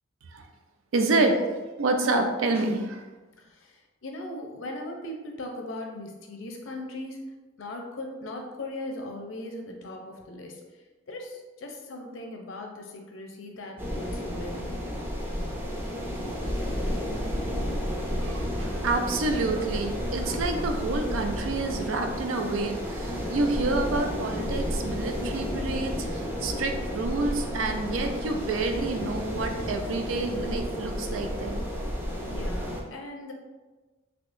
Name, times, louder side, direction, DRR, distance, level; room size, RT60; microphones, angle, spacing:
voice 1, 0.9-3.0 18.2-31.6, right 3 dB, 85° right, 5 dB, 0.4 m, -28 dB
voice 2, 3.5-7.2 7.6-10.6 11.1-14.8 15.3-15.5 32.2-33.3, left 1 dB, 80° left, 2 dB, 0.6 m, -39 dB
sound 1, 13.8-32.8, equal, 10° right, 0.4 m, -31 dB
3.6 x 2.9 x 2.5 m, 1.3 s
head